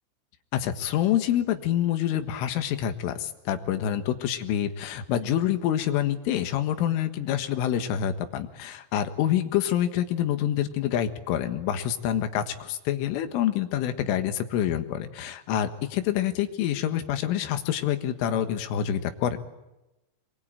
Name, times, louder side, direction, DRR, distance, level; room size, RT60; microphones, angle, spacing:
voice 1, 0.5-19.4, left 10 dB, 80° left, 8 dB, 4.1 m, -27 dB
27.5 x 22.5 x 9.0 m, 0.97 s
omnidirectional pair, 5.7 m